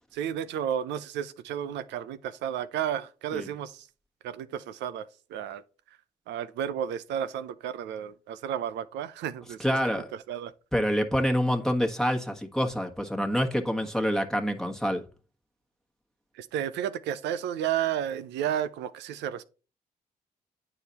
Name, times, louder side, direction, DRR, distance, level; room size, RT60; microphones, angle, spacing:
voice 1, 0.1-3.9 4.2-5.6 6.3-10.5 16.3-19.4, right 9 dB, 90° right, 0.6 m, -32 dB
voice 2, 9.6-10.1 10.7-15.0, equal, 5° left, 1.4 m, -27 dB
8.9 x 4.9 x 4.1 m
supercardioid pair, 55°, 18 cm